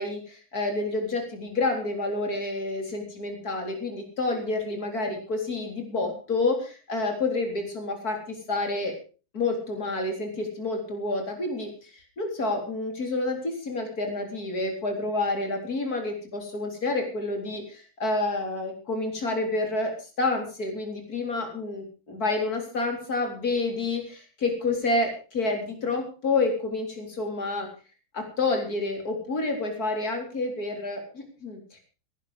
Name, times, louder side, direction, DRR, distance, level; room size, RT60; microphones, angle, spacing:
voice 1, 0.0-8.9 9.3-27.7 28.1-31.8, left 2 dB, 50° left, 3 dB, 4.4 m, -29 dB
18.0 x 11.0 x 5.1 m, 0.36 s
omnidirectional pair, 2.1 m